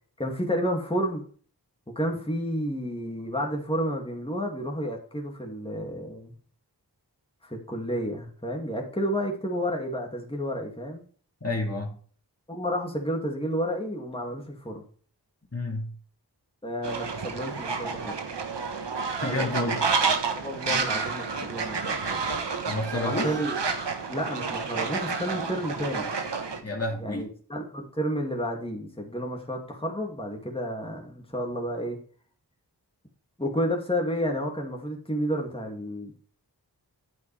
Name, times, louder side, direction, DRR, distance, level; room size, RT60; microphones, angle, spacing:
voice 1, 0.2-1.3 1.9-6.3 7.4-11.0 12.5-14.8 16.6-18.2 19.2-19.5 20.3-22.2 22.9-23.6 24.1-26.1 27.0-32.0 33.4-36.3, equal, 15° left, 0 dB, 2.5 m, -31 dB
voice 2, 11.4-11.9 15.5-15.9 19.2-19.9 22.6-23.3 26.6-27.3, left 2 dB, 35° left, 0 dB, 2.5 m, -29 dB
Fowl, 16.8-26.6, right 4 dB, 85° right, 1.3 m, -30 dB
9.7 x 8.5 x 3.4 m, 0.43 s
wide cardioid pair, 45°, 41 cm